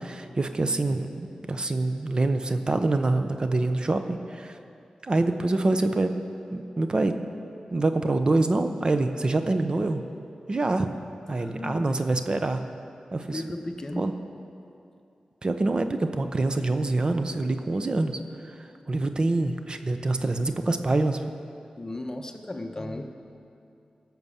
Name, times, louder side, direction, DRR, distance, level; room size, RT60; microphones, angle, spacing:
voice 1, 0.0-4.6 5.0-6.1 6.5-7.1 7.7-10.0 10.5-10.9 11.3-12.6 13.1-13.4 14.0-14.1 15.4-21.2, right 2 dB, 40° right, 7 dB, 0.7 m, -26 dB
voice 2, 11.4-12.0 13.3-14.1 21.8-23.0, left 1 dB, 25° left, 4 dB, 0.9 m, -35 dB
16.5 x 6.1 x 7.0 m, 2.5 s
wide cardioid pair, 75°, 2 cm